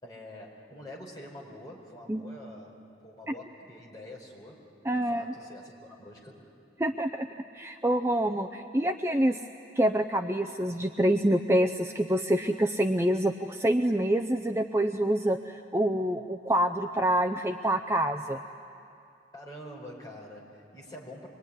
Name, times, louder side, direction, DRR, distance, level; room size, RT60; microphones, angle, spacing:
voice 1, 0.0-2.8 3.0-6.5 19.3-21.3, left 1 dB, 20° left, -2 dB, 4.9 m, -46 dB
voice 2, 4.8-5.3 6.8-7.3 7.5-9.4 9.8-18.4, right 1 dB, 15° right, 6 dB, 0.6 m, -26 dB
25.5 x 23.0 x 10.0 m, 2.5 s
head